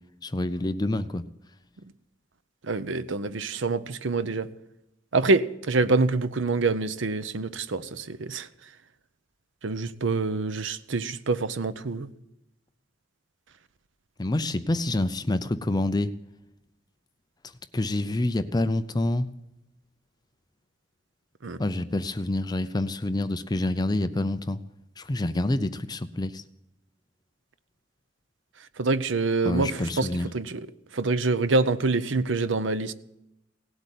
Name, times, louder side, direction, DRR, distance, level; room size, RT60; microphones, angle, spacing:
voice 1, 0.2-1.2 14.2-16.1 17.7-19.3 21.6-24.6 25.0-26.4 29.4-30.3, left 1 dB, 20° left, 0.5 m, -27 dB
voice 2, 2.7-4.5 5.1-8.5 9.6-12.1 21.4-21.6 28.8-30.1 30.3-30.6 30.9-32.9, right 3 dB, 70° right, 0.7 m, -26 dB
17.5 x 8.1 x 9.2 m
head